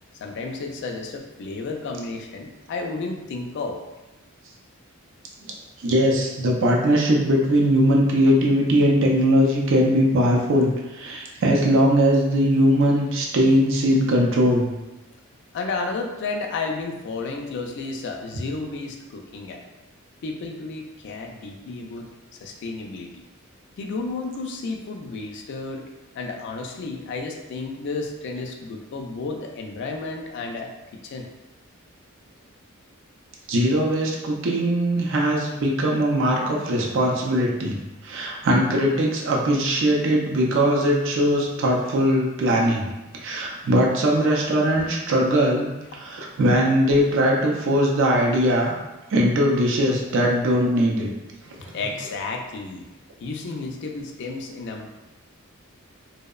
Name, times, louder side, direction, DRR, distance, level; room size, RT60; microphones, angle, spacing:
voice 1, 0.2-3.8 15.5-19.6 20.2-22.1 22.4-23.2 23.8-25.8 26.1-31.3 51.7-52.9 53.2-55.0, left 3 dB, 55° left, 2 dB, 0.3 m, -32 dB
voice 2, 5.8-14.7 33.5-37.8 38.0-42.9 43.2-48.8 49.1-51.1 51.8-52.1, equal, 60° right, -1 dB, 0.4 m, -20 dB
2.7 x 2.0 x 2.3 m, 1.1 s
head